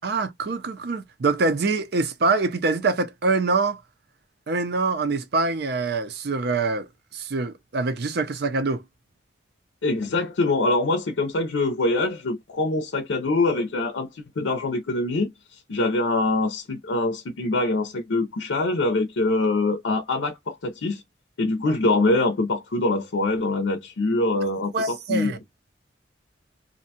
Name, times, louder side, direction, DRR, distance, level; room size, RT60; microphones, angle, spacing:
voice 1, 0.0-3.8 4.5-6.9 7.1-8.8 24.7-25.4, right 3 dB, 55° right, 0.5 m, -24 dB
voice 2, 9.8-15.3 15.7-21.0 21.4-25.3, left 2 dB, 80° left, 0.5 m, -24 dB
2.6 x 2.2 x 2.7 m
head